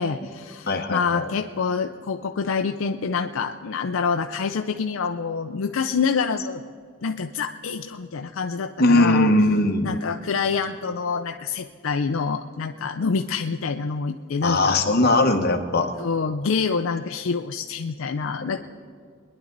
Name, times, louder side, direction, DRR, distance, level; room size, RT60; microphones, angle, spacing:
voice 1, 0.0-6.6 7.0-9.3 9.8-14.8 16.0-18.6, left 5 dB, 70° left, 6 dB, 0.5 m, -26 dB
voice 2, 0.7-1.3 8.8-9.9 14.4-15.9, left 2 dB, 50° left, 4 dB, 1.2 m, -20 dB
22.5 x 10.5 x 4.0 m, 2.2 s
head